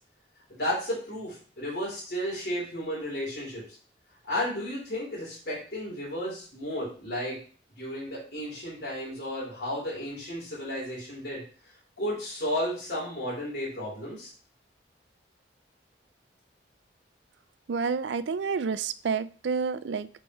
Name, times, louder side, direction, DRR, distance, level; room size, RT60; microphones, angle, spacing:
voice 1, 0.5-3.6 4.3-7.4 7.8-11.4 12.0-14.3, equal, 65° left, -7 dB, 3.8 m, -33 dB
voice 2, 17.7-20.1, right 5 dB, 75° right, 15 dB, 0.4 m, -29 dB
7.8 x 5.3 x 3.1 m, 0.40 s
head